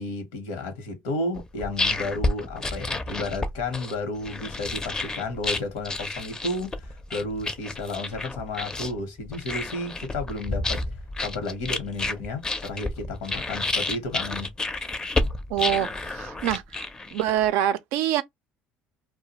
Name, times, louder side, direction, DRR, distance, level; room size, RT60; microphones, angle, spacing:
voice 1, 0.0-10.9 11.2-14.5, left 2 dB, 90° left, 0.9 m, -32 dB
sound 1, 1.3-17.5, left 2 dB, 20° left, 0.4 m, -30 dB
voice 2, 15.5-18.2, right 11 dB, 80° right, 0.4 m, -26 dB
2.3 x 2.1 x 2.8 m
supercardioid pair, 105°, 4 cm